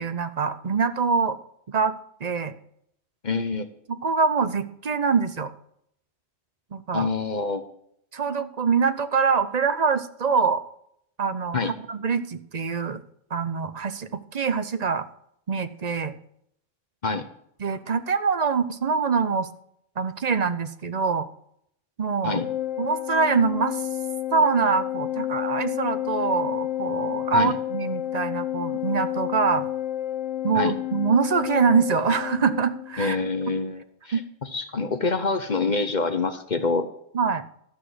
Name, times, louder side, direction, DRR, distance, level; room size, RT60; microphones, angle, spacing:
voice 1, 0.0-1.4 1.7-2.6 4.0-5.5 6.7-7.1 8.1-10.6 11.2-13.0 13.3-15.1 15.5-16.1 17.6-19.5 20.0-21.3 22.0-22.4 22.8-23.9 24.3-29.7 30.4-33.2 34.1-34.2 37.1-37.4, right 5 dB, 40° right, 11 dB, 0.7 m, -24 dB
voice 2, 3.2-3.7 6.9-7.6 11.5-11.7 17.0-17.3 22.2-22.5 27.3-27.6 30.5-30.7 33.0-36.9, left 4 dB, 40° left, 9 dB, 1.0 m, -26 dB
Organ, 22.3-33.0, left 12 dB, 80° left, 1.3 m, -30 dB
13.5 x 6.1 x 7.8 m, 0.70 s
omnidirectional pair, 1.3 m